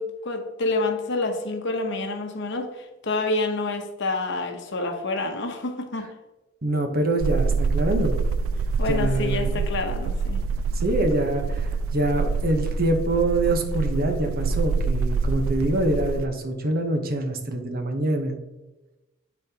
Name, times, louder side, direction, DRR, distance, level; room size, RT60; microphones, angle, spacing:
voice 1, 0.0-6.1 8.8-10.4, left 2 dB, 60° left, 4 dB, 0.9 m, -28 dB
voice 2, 6.6-8.2 8.9-9.6 10.7-18.4, right 1 dB, 50° right, 4 dB, 1.0 m, -25 dB
sound 1, 7.2-16.3, right 4 dB, 85° right, 0.3 m, -26 dB
10.0 x 4.3 x 2.9 m, 1.1 s
head